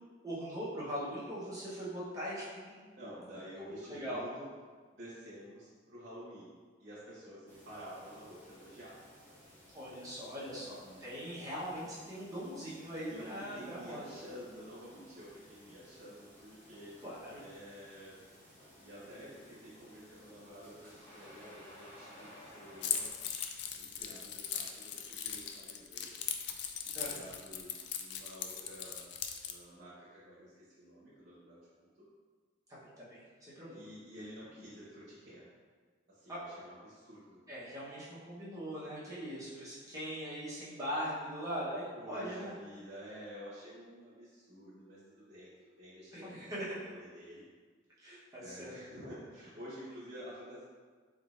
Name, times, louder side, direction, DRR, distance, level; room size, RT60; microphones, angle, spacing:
voice 1, 0.2-2.9 3.7-4.2 9.7-14.0 17.0-17.4 26.9-27.3 33.0-33.2 33.6-33.8 36.3-36.4 37.5-42.5 46.1-46.8 48.0-49.1, equal, 20° right, -9 dB, 0.9 m, -41 dB
voice 2, 3.0-4.5 4.9-8.9 10.6-11.0 13.0-18.1 18.8-23.1 23.8-26.1 26.8-29.2 29.4-31.9 33.2-35.5 36.1-37.4 41.9-47.5 48.0-50.6, equal, 55° right, -9 dB, 1.0 m, -50 dB
sound 1, 7.5-23.1, left 1 dB, 10° left, 1.0 m, -57 dB
Keys jangling, 22.8-29.5, left 8 dB, 60° left, 0.3 m, -39 dB
4.0 x 3.7 x 2.4 m, 1.5 s
head